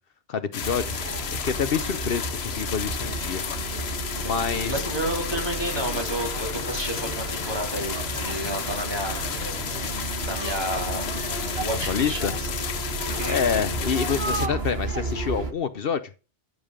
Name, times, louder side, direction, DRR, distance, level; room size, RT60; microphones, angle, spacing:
voice 1, 0.3-0.9 1.4-3.7 4.2-4.8 11.9-12.3 13.3-16.0, left 6 dB, 65° left, 13 dB, 1.0 m, -27 dB
sound 1, 0.5-14.5, left 7 dB, 90° left, 1.2 m, -32 dB
sound 2, 0.6-15.5, right 2 dB, 75° right, 1.8 m, -32 dB
voice 2, 4.6-9.4 9.8-10.0 10.2-11.1 11.5-12.5 13.1-13.4, right 1 dB, 25° right, 1 dB, 4.2 m, -31 dB
14.5 x 6.7 x 5.1 m, 0.33 s
omnidirectional pair, 1.0 m